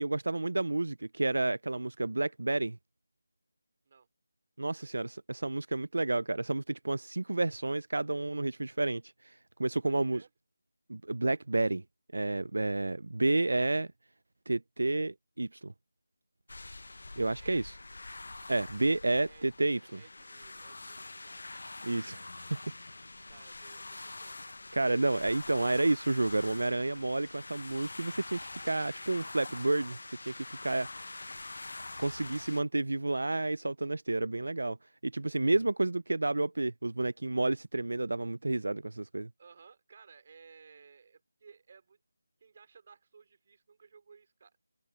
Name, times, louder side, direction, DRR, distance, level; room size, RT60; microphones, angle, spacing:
voice 1, 0.0-2.8 4.6-10.2 10.9-11.8 12.1-13.9 14.5-15.7 17.2-17.7 18.5-20.0 21.8-22.6 24.7-31.1 32.0-34.8 35.0-39.3, right 2 dB, 80° right, 0.4 m, -30 dB
voice 2, 9.8-10.3 17.4-17.6 19.1-21.4 23.3-24.4 39.4-42.0 42.4-44.5, right 5 dB, 30° right, 4.6 m, -58 dB
sound 1, 16.5-32.6, left 2 dB, 65° left, 0.7 m, -45 dB
figure-of-eight pair, 175°, 0 cm